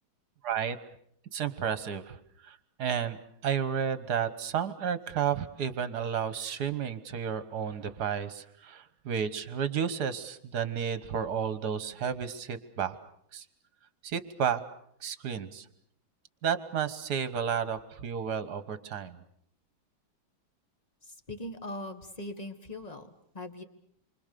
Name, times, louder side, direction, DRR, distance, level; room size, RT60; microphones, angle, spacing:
voice 1, 0.4-0.8 1.3-2.2 2.4-13.0 13.3-13.5 14.0-14.6 15.0-15.7 16.4-19.2, right 7 dB, 55° right, 13 dB, 1.7 m, -32 dB
voice 2, 21.0-23.6, left 1 dB, 20° left, 7 dB, 1.6 m, -41 dB
28.0 x 25.0 x 6.8 m, 0.69 s
omnidirectional pair, 2.2 m